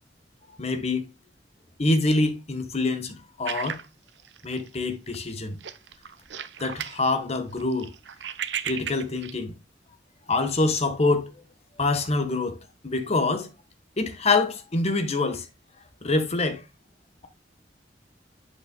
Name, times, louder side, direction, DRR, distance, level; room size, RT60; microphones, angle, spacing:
voice 1, 0.6-1.1 1.8-3.8 4.4-5.6 6.6-7.9 8.6-9.5 10.3-11.3 11.8-12.6 12.8-13.5 14.0-15.5 16.0-16.6, left 3 dB, 35° left, 1.2 m, -25 dB
sound 1, 3.4-4.8 5.1-5.3 5.6-7.0 7.3-9.3, right 8 dB, 75° right, 0.7 m, -35 dB
8.2 x 6.6 x 2.2 m
head